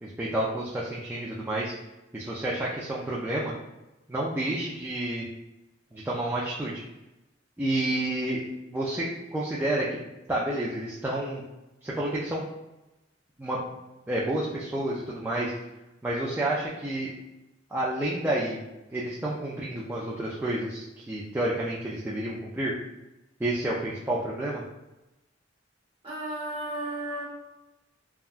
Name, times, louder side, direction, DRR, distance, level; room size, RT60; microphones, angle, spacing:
voice 1, 0.0-1.7 2.1-3.5 4.1-5.3 5.9-6.8 7.6-9.9 10.3-11.4 11.8-12.4 13.4-13.6 14.1-15.5 16.0-17.1 17.7-18.6 18.9-22.7 23.4-24.6, right 1 dB, 10° right, -6 dB, 0.3 m, -30 dB
voice 2, 26.0-27.2, right 1 dB, 30° right, -7 dB, 1.1 m, -33 dB
3.5 x 2.2 x 2.4 m, 0.98 s
head